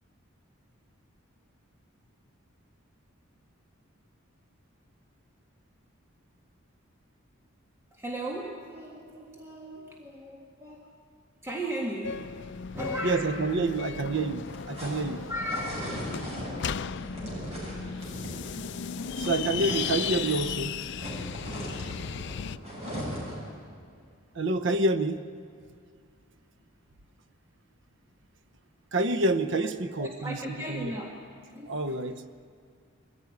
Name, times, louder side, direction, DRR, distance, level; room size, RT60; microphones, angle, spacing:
voice 1, 7.9-10.9 11.4-12.3 12.7-13.6 15.3-15.8 29.6-29.7 30.0-31.2 31.4-32.0, equal, 15° right, -1 dB, 1.7 m, -36 dB
sound 1, 12.0-22.6, left 7 dB, 60° left, 0.5 m, -36 dB
voice 2, 13.0-15.2 19.2-20.8 24.3-25.2 28.9-30.4 30.7-30.9 31.7-32.3, right 2 dB, 60° right, 11 dB, 0.8 m, -28 dB
sound 2, 14.2-20.5 20.8-23.5, equal, 30° right, 7.3 m, -38 dB
22.5 x 15.0 x 9.5 m, 2.2 s
head